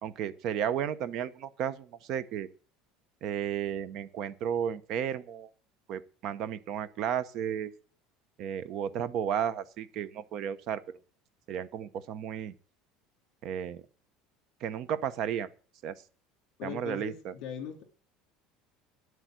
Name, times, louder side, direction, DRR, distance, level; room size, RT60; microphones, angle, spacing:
voice 1, 0.0-2.5 3.2-5.5 5.9-7.7 8.4-10.8 11.5-12.5 13.4-13.8 14.6-15.5 15.8-15.9 16.6-17.3, right 9 dB, 45° right, 14 dB, 0.9 m, -33 dB
voice 2, 16.6-17.8, left 8 dB, 50° left, 4 dB, 3.2 m, -39 dB
9.7 x 8.2 x 7.8 m, 0.40 s
cardioid pair, 170°, 0 cm